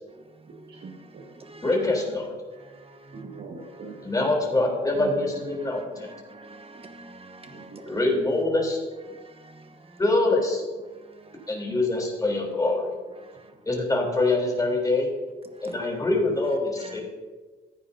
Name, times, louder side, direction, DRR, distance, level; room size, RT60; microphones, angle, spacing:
voice 1, 0.5-1.3 3.1-4.4 4.9-5.3 7.4-8.3, right 4 dB, 55° right, 1.7 m, -42 dB
voice 2, 1.6-2.3 4.0-6.1 7.9-8.8 10.0-10.6 11.5-12.9 13.7-15.1 15.6-17.0, left 2 dB, 20° left, 3.6 m, -24 dB
voice 3, 2.6-3.4 5.6-8.0 9.1-10.0 11.1-11.5 13.2-13.5 15.6-15.8 16.8-17.0, right 2 dB, 30° right, 1.3 m, -47 dB
14.5 x 9.6 x 2.8 m
cardioid pair, 90°, 20 cm